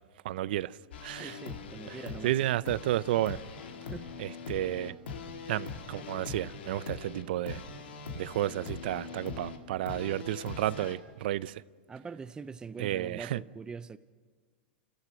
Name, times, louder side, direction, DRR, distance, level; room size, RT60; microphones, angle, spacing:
voice 1, 0.2-0.8 1.0-1.4 1.9-2.0 2.2-3.4 4.2-5.0 5.5-7.6 8.1-11.6 12.8-13.4, right 14 dB, 70° right, 0.5 m, -32 dB
sound 1, 0.9-11.0, left 5 dB, 85° left, 2.2 m, -42 dB
voice 2, 1.1-2.3 3.8-4.1 11.9-14.0, right 5 dB, 15° right, 0.5 m, -43 dB
29.0 x 14.5 x 6.3 m
hypercardioid pair, 125°, 6 cm